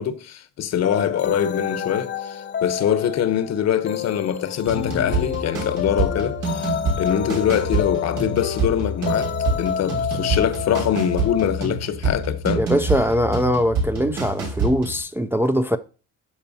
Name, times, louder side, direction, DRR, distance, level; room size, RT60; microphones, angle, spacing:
voice 1, 0.0-12.7, left 9 dB, 60° left, 0.9 m, -24 dB
sound 1, 0.8-11.6, left 8 dB, 40° left, 0.6 m, -29 dB
sound 2, 4.6-15.0, right 3 dB, 85° right, 4.4 m, -27 dB
voice 2, 12.6-15.8, equal, 10° right, 0.4 m, -21 dB
12.5 x 4.4 x 2.7 m
cardioid pair, 120°, 30 cm